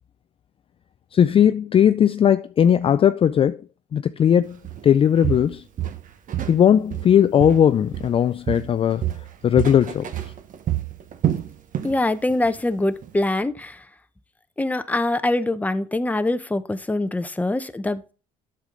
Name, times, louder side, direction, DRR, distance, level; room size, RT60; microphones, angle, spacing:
voice 1, 1.1-3.6 3.9-4.6 4.8-5.6 6.5-9.1 9.4-10.3, left 9 dB, 35° left, 0.3 m, -18 dB
Walk footsteps, 4.6-4.9 5.2-6.6 6.9-8.2 8.5-12.0 12.3-12.6 13.0-13.1, right 11 dB, 50° right, 1.1 m, -28 dB
voice 2, 11.8-13.9 14.6-18.1, left 2 dB, 10° left, 0.7 m, -24 dB
8.1 x 6.8 x 3.7 m
cardioid pair, 110°, 17 cm